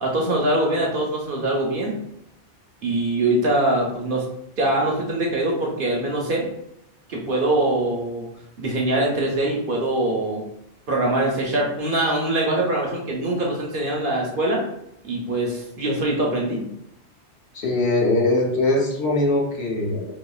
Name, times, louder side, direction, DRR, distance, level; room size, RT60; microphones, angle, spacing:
voice 1, 0.0-2.0 2.8-4.2 4.6-6.5 7.1-8.3 8.6-10.4 10.9-14.6 15.0-16.7, right 1 dB, 55° right, -1 dB, 0.9 m, -23 dB
voice 2, 17.5-20.0, left 2 dB, 65° left, -3 dB, 1.2 m, -21 dB
4.4 x 2.9 x 2.3 m, 0.78 s
omnidirectional pair, 1.2 m